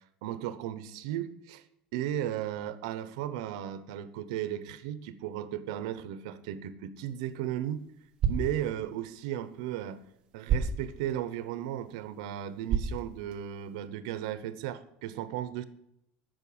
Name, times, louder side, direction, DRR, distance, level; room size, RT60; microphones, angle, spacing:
voice 1, 0.2-1.6 1.9-7.8 8.2-10.0 10.3-15.6, right 11 dB, 85° right, 13 dB, 0.9 m, -35 dB
sound 1, 6.9-13.9, right 6 dB, 30° right, 1.3 m, -36 dB
8.9 x 6.5 x 8.6 m, 0.79 s
cardioid pair, 160°, 3 cm